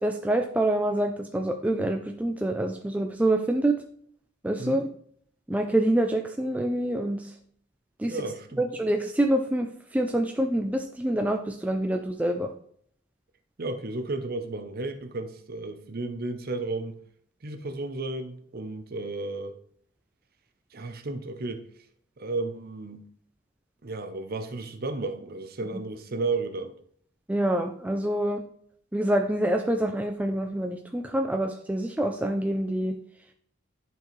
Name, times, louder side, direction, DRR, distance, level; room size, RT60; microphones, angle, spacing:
voice 1, 0.0-3.8 4.4-4.9 5.5-7.2 8.0-8.2 8.6-9.7 9.9-12.5 27.3-28.4 28.9-33.0, right 1 dB, 5° right, 0.3 m, -26 dB
voice 2, 4.6-4.9 8.0-8.6 13.6-17.0 17.4-19.5 20.7-21.7 22.2-23.1 23.8-26.8, right 3 dB, 45° right, 0.7 m, -33 dB
10.5 x 4.6 x 3.1 m
head